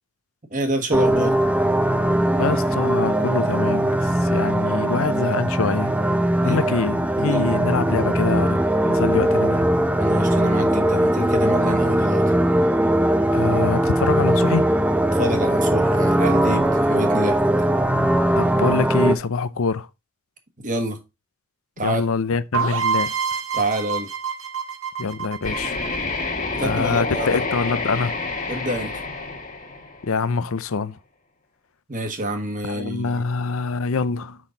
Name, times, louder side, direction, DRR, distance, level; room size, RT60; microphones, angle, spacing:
voice 1, 0.5-1.3 6.4-6.6 7.2-7.5 10.0-12.3 15.1-17.4 20.6-21.0 21.8-22.0 23.5-24.1 26.5-27.4 28.5-28.9 31.9-33.2, right 1 dB, 35° right, 1.4 m, -27 dB
sound 1, 0.9-19.2, right 1 dB, 5° right, 0.5 m, -20 dB
voice 2, 2.4-6.0 6.4-8.6 8.8-9.7 13.3-14.7 18.4-19.9 21.8-23.1 25.0-25.7 26.6-28.1 30.0-31.0 32.7-34.4, left 4 dB, 65° left, 0.5 m, -25 dB
sound 2, 22.5-26.3, right 6 dB, 65° right, 1.8 m, -26 dB
sound 3, 25.4-30.3, left 3 dB, 35° left, 1.6 m, -28 dB
6.3 x 5.8 x 3.8 m
head